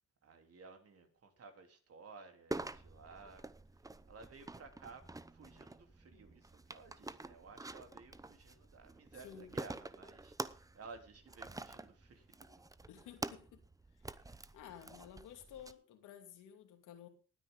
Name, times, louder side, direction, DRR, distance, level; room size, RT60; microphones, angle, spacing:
voice 1, 0.2-3.5 3.8-12.5 14.1-14.5, right 4 dB, 50° right, 3.4 m, -56 dB
sound 1, 2.5-15.7, right 2 dB, 10° right, 0.8 m, -47 dB
voice 2, 9.2-9.6 12.9-13.6 13.9-14.0 14.5-17.1, left 9 dB, 90° left, 2.6 m, -53 dB
19.5 x 9.3 x 3.8 m
cardioid pair, 90°, 30 cm